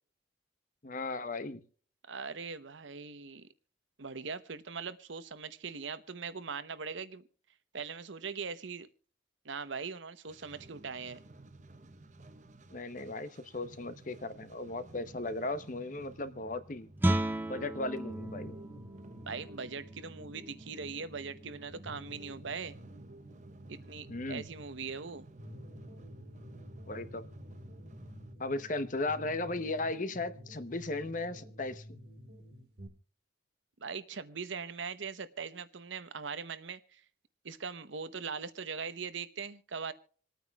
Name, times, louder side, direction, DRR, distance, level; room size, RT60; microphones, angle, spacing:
voice 1, 0.8-1.6 12.7-16.9 17.5-18.6 24.1-24.4 26.9-27.3 28.4-32.0, left 2 dB, 40° left, 0.8 m, -36 dB
voice 2, 2.1-3.5 4.0-7.2 7.7-8.9 9.4-11.2 19.3-22.8 23.7-25.3 33.8-37.0 37.4-39.9, right 5 dB, 75° right, 0.8 m, -41 dB
sound 1, 10.3-28.3, right 1 dB, 40° right, 0.9 m, -54 dB
Guitar, 17.0-22.5, right 1 dB, 10° right, 0.5 m, -36 dB
sound 2, 18.1-32.9, equal, 60° right, 1.9 m, -51 dB
27.0 x 9.2 x 2.3 m
head